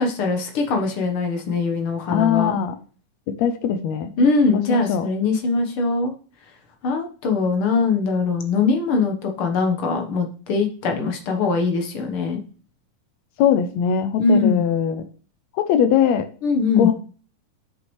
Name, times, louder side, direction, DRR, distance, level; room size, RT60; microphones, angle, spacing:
voice 1, 0.0-2.5 4.2-6.1 6.8-12.4 14.2-14.6 16.4-16.9, left 4 dB, 60° left, 4 dB, 1.4 m, -21 dB
voice 2, 2.1-2.7 3.4-4.1 4.5-5.1 13.4-15.0 15.5-16.3 16.8-16.9, left 8 dB, 85° left, 9 dB, 1.6 m, -20 dB
9.6 x 6.6 x 3.2 m, 0.39 s
omnidirectional pair, 4.0 m